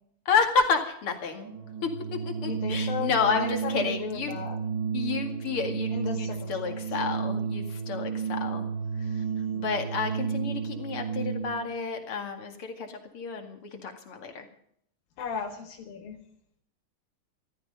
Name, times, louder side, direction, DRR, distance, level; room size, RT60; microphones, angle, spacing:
voice 1, 0.3-1.5 1.8-4.3 4.9-8.7 9.0-9.2 9.5-14.5, left 5 dB, 45° left, 5 dB, 2.7 m, -30 dB
Organ, 1.4-11.7, right 6 dB, 80° right, 4.2 m, -32 dB
voice 2, 2.4-4.6 5.9-6.8 15.2-16.2, left 6 dB, 85° left, 1 dB, 3.4 m, -35 dB
14.5 x 14.0 x 5.4 m, 0.68 s
omnidirectional pair, 3.9 m